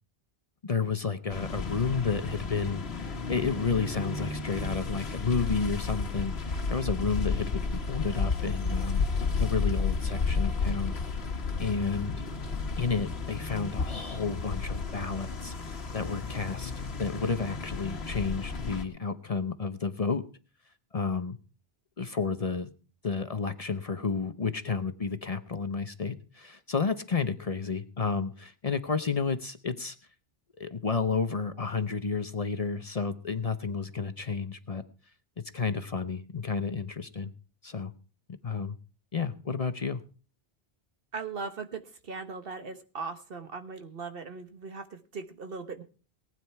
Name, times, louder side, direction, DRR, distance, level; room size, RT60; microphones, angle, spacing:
voice 1, 0.6-9.1 9.3-10.9 11.6-12.1 12.8-16.7 17.0-20.2 20.9-21.4 22.0-22.7 23.0-30.0 30.6-34.8 35.5-37.3 37.6-37.9 38.4-38.8 39.1-40.0, left 5 dB, 40° left, 11 dB, 0.8 m, -31 dB
sound 1, 1.3-18.8, left 4 dB, 80° left, 1.6 m, -32 dB
voice 2, 41.1-45.8, right 4 dB, 65° right, 8 dB, 1.5 m, -39 dB
19.0 x 9.3 x 4.6 m, 0.37 s
omnidirectional pair, 1.0 m